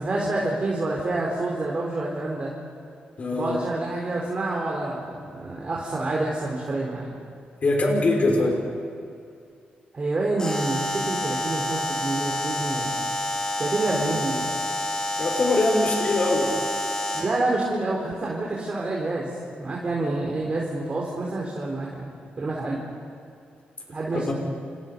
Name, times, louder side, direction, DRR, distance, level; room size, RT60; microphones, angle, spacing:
voice 1, 0.0-2.5 3.3-7.1 8.4-8.5 9.9-12.9 13.6-14.5 17.1-19.3 19.6-22.1 22.4-22.8 23.9-24.3, right 2 dB, 35° right, -3 dB, 4.1 m, -28 dB
voice 2, 3.2-3.6 7.6-8.6 14.1-14.2 15.2-16.5 20.0-20.2 24.1-24.3, left 2 dB, 45° left, 1 dB, 5.4 m, -23 dB
Alarm, 10.4-17.4, left 1 dB, 20° left, 3.6 m, -28 dB
29.5 x 28.5 x 5.5 m, 2.4 s
wide cardioid pair, 130°, 3 cm